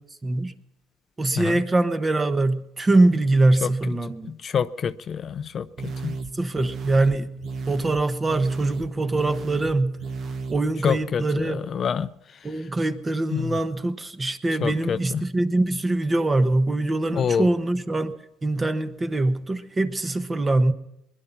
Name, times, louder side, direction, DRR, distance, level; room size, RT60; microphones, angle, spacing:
voice 1, 0.2-0.5 1.2-4.3 6.3-7.3 7.7-10.0 10.5-11.6 12.4-18.1 18.4-20.7, right 2 dB, 20° right, 1.1 m, -23 dB
voice 2, 4.4-6.1 10.8-12.1 13.3-13.5 14.6-15.2 17.1-17.5, left 7 dB, 40° left, 0.5 m, -26 dB
sound 1, 5.8-10.9, right 4 dB, 50° right, 1.2 m, -34 dB
21.0 x 11.0 x 5.8 m
supercardioid pair, 90°, 0 cm